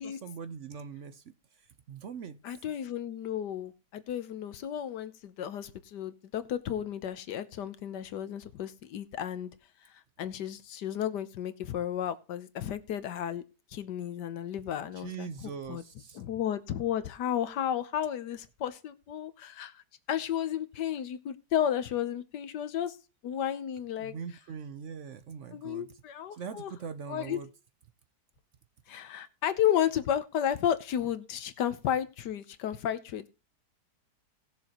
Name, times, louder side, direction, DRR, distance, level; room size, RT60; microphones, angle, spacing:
voice 1, 0.0-2.4 15.0-16.2 24.0-25.9 26.3-27.5, right 6 dB, 60° right, 0.8 m, -42 dB
voice 2, 2.4-9.5 9.8-13.4 13.7-15.8 16.1-19.8 20.1-23.0 23.2-24.1 25.5-26.7 27.1-27.4 28.9-33.3, left 10 dB, 90° left, 1.5 m, -33 dB
18.5 x 6.9 x 3.0 m
omnidirectional pair, 1.8 m